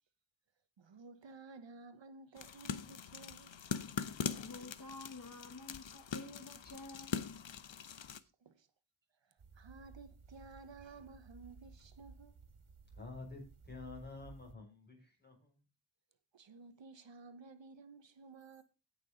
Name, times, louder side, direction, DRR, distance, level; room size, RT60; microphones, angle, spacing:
voice 1, 0.8-3.5 8.4-8.7 9.2-12.3 16.3-18.6, right 4 dB, 65° right, 1.0 m, -55 dB
sound 1, 2.4-8.2, left 7 dB, 65° left, 0.9 m, -42 dB
voice 2, 4.3-7.2, left 2 dB, 40° left, 1.4 m, -50 dB
sound 2, 9.4-14.5, right 4 dB, 80° right, 2.0 m, -57 dB
voice 3, 12.9-15.6, left 3 dB, 20° left, 5.8 m, -50 dB
17.0 x 6.2 x 3.9 m
wide cardioid pair, 110°, 49 cm